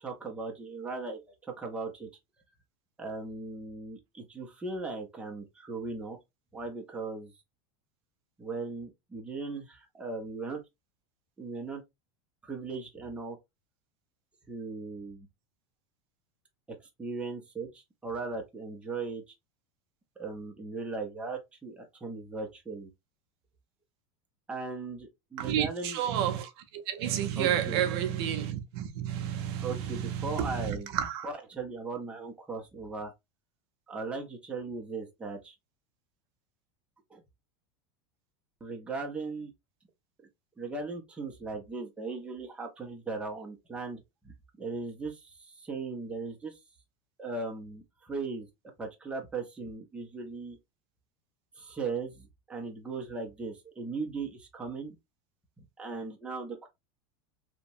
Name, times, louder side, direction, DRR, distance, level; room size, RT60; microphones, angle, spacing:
voice 1, 0.0-2.1 3.0-6.2 6.5-7.3 8.4-10.6 11.4-11.8 12.4-13.4 14.5-15.3 16.7-19.2 20.2-22.9 24.5-26.0 27.4-27.9 29.6-31.0 31.2-33.1 33.9-35.5 37.1-37.2 38.6-39.5 40.6-46.6 47.2-48.5 48.8-50.6 51.6-54.9 55.6-56.7, right 3 dB, 10° right, 0.6 m, -38 dB
voice 2, 25.4-31.3, right 10 dB, 60° right, 0.6 m, -31 dB
2.8 x 2.1 x 2.6 m
supercardioid pair, 145°, 14 cm